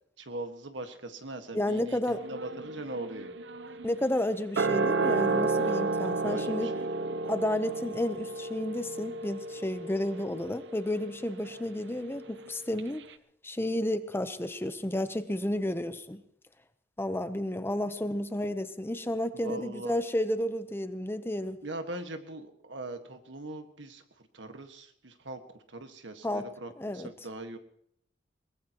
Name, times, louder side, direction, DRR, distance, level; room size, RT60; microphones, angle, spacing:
voice 1, 0.2-3.4 6.1-7.2 19.3-20.0 21.6-27.6, right 2 dB, 90° right, 7 dB, 1.7 m, -41 dB
voice 2, 1.5-2.2 3.8-6.7 7.2-13.0 13.4-16.2 17.0-21.6 26.2-26.5 26.8-27.1, left 1 dB, 15° left, 11 dB, 0.8 m, -31 dB
sound 1, 2.1-12.5 12.8-12.9, right 3 dB, 70° right, 0.7 m, -32 dB
22.5 x 19.5 x 3.0 m, 0.71 s
head